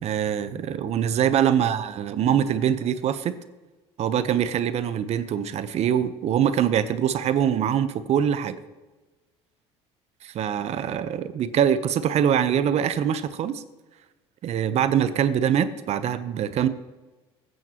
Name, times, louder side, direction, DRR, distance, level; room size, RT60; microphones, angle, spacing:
voice 1, 0.0-3.3 4.0-8.6 10.2-13.6 14.4-16.7, right 9 dB, 55° right, 12 dB, 0.9 m, -23 dB
20.0 x 9.4 x 3.0 m, 1.2 s
supercardioid pair, 80°, 13 cm